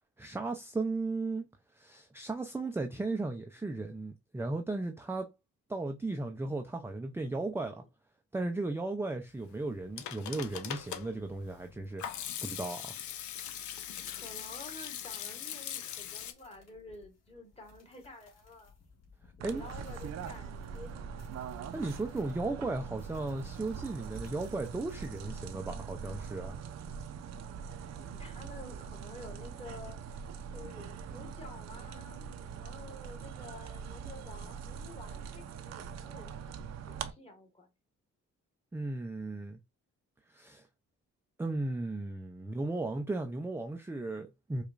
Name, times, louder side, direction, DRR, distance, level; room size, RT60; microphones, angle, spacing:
voice 1, 0.2-1.5 1.8-5.3 5.7-7.8 8.3-12.0 12.4-13.0 19.4-19.6 21.7-26.6 38.7-39.6 40.3-40.7 41.4-44.6, right 2 dB, 10° right, 0.4 m, -35 dB
Hands / Sink (filling or washing), 9.6-16.3, left 10 dB, 75° left, 0.6 m, -41 dB
voice 2, 13.9-18.7 19.4-21.4 27.9-36.3 36.9-37.7, left 2 dB, 20° left, 1.3 m, -50 dB
sound 1, 16.3-25.4, left 5 dB, 55° left, 1.7 m, -60 dB
sound 2, 19.4-37.1, right 7 dB, 60° right, 0.6 m, -43 dB
4.9 x 2.3 x 2.4 m
cardioid pair, 90°, 30 cm